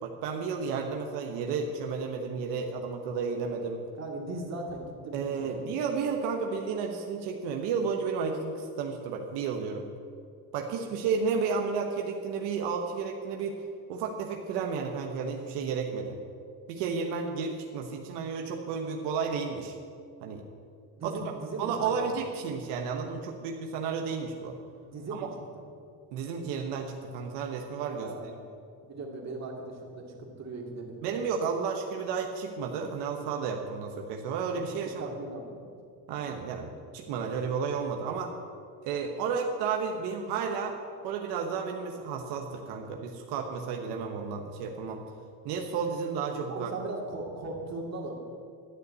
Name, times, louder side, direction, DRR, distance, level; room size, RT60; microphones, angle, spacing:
voice 1, 0.0-3.8 5.1-9.9 10.5-13.6 13.9-16.2 16.7-19.7 20.2-20.4 21.0-21.2 21.6-24.6 25.1-25.3 26.1-28.1 31.0-35.1 36.1-38.3 38.8-40.8 41.0-45.0 45.4-46.7, right 5 dB, 85° right, 2 dB, 1.1 m, -32 dB
voice 2, 4.0-5.6 21.0-22.1 24.8-25.3 28.0-28.4 28.8-31.0 34.7-35.7 46.5-48.2, right 2 dB, 40° right, 0 dB, 2.4 m, -38 dB
11.5 x 6.9 x 8.2 m, 2.3 s
cardioid pair, 120°, 39 cm